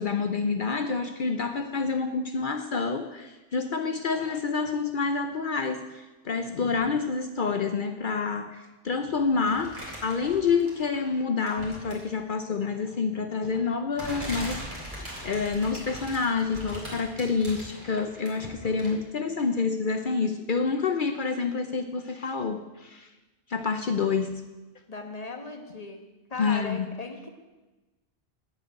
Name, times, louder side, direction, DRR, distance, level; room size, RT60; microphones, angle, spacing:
voice 1, 0.0-14.6 15.0-23.1 23.5-24.4 26.4-26.9, left 5 dB, 55° left, 7 dB, 0.8 m, -28 dB
sound 1, 9.5-11.0 11.4-12.2 13.2-13.3 14.0-19.1 19.4-19.5, equal, 50° right, 3.7 m, -40 dB
voice 2, 24.9-26.0 26.3-27.3, left 3 dB, 35° left, 4 dB, 1.5 m, -37 dB
9.1 x 8.3 x 8.0 m, 1.1 s
omnidirectional pair, 1.1 m